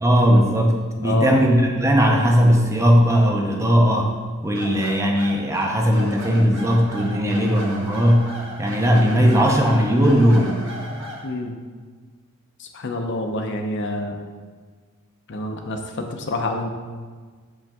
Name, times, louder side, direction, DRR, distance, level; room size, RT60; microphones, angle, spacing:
voice 1, 0.0-4.1 4.4-8.3 8.6-10.6, equal, 15° right, 1 dB, 0.7 m, -18 dB
voice 2, 1.0-1.3 11.2-11.6 12.6-14.2 15.3-16.7, left 2 dB, 55° left, 4 dB, 0.7 m, -27 dB
sound 1, 4.5-11.3, equal, 60° right, 1.4 m, -36 dB
6.3 x 5.3 x 3.6 m, 1.5 s
head